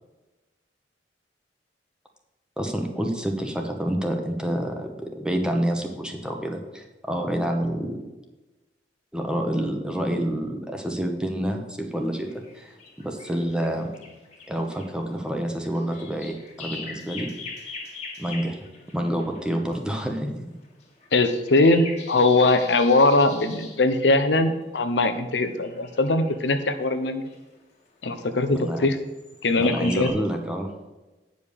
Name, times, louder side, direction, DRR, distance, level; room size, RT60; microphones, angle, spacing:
voice 1, 2.6-8.0 9.1-13.9 14.5-17.3 18.2-18.6 18.9-20.3 28.5-28.9 29.5-30.7, right 1 dB, 5° right, 3 dB, 1.0 m, -28 dB
sound 1, 11.9-19.8 20.6-23.8 25.3-26.5 27.0-27.4 28.4-28.8 29.1-30.1, left 3 dB, 40° left, 1.8 m, -41 dB
voice 2, 21.1-27.2 28.0-29.0 29.4-30.1, left 2 dB, 80° left, 8 dB, 0.8 m, -21 dB
9.1 x 5.3 x 6.8 m, 1.1 s
head